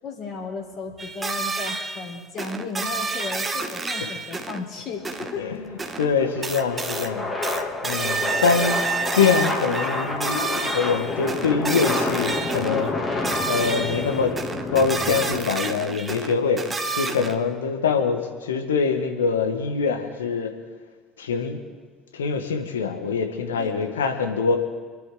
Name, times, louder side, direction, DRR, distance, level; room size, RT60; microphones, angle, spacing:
voice 1, 0.0-5.5 6.4-6.5 8.2-8.4 23.6-24.0, left 4 dB, 45° left, 0 dB, 3.9 m, -35 dB
sound 1, 1.0-4.6 5.1-5.4 5.8-6.1 6.4-7.1 7.4-12.9 13.2-17.4, right 4 dB, 20° right, 1.3 m, -29 dB
sound 2, 5.0-15.4, left 2 dB, 25° left, 2.5 m, -29 dB
voice 2, 5.4-7.3 7.8-8.8 9.1-12.9 13.5-14.3 14.7-20.5 21.2-21.6 22.1-24.6, left 5 dB, 75° left, 5 dB, 1.4 m, -24 dB
27.5 x 10.5 x 3.8 m, 1.5 s
figure-of-eight pair, 60°, 0 cm